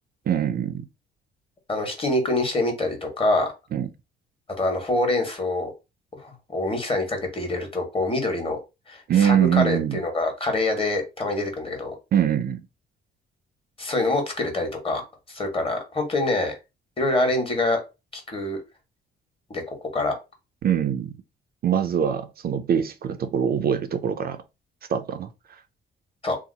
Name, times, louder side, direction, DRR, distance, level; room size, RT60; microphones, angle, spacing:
voice 1, 0.3-0.8 3.7-3.9 9.1-10.0 12.1-12.6 20.6-21.1 21.6-24.4 24.9-25.3, right 9 dB, 50° right, 0.4 m, -23 dB
voice 2, 1.7-3.5 4.6-5.7 6.1-8.6 8.9-11.9 13.8-15.0 15.3-16.6 17.0-17.8 18.1-18.6 19.5-20.1 26.2-26.4, left 2 dB, 30° left, 1.3 m, -25 dB
2.8 x 2.0 x 3.9 m
cardioid pair, 90°, 20 cm